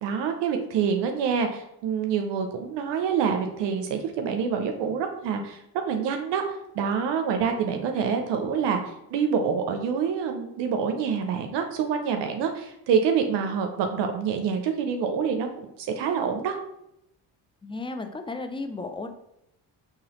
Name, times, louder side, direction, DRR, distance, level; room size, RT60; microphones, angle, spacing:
voice 1, 0.0-16.6, right 6 dB, 75° right, 5 dB, 0.6 m, -26 dB
voice 2, 17.6-19.1, left 3 dB, 15° left, 7 dB, 0.4 m, -34 dB
3.9 x 2.9 x 2.9 m, 0.81 s
supercardioid pair, 65°, 42 cm